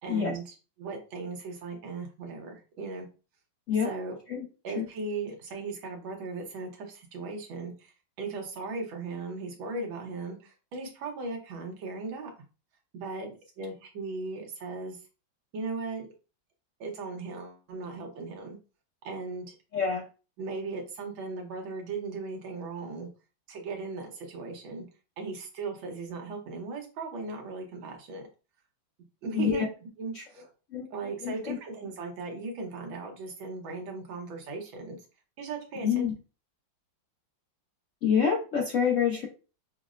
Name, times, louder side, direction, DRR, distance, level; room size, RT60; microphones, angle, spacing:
voice 1, 0.0-3.1 3.8-4.2 4.6-12.3 12.9-15.0 15.5-16.1 16.8-18.6 19.0-19.5 20.4-23.1 23.5-24.8 25.2-28.2 29.2-29.6 30.0-30.5 30.9-35.0 35.4-36.1, right 3 dB, 80° right, 2 dB, 1.8 m, -37 dB
voice 2, 19.7-20.1 29.3-29.7 30.1-30.2 30.7-30.9 31.2-31.6 35.8-36.1 38.0-39.3, left 7 dB, 75° left, 0 dB, 0.7 m, -26 dB
6.1 x 2.0 x 2.5 m, 0.33 s
omnidirectional pair, 2.1 m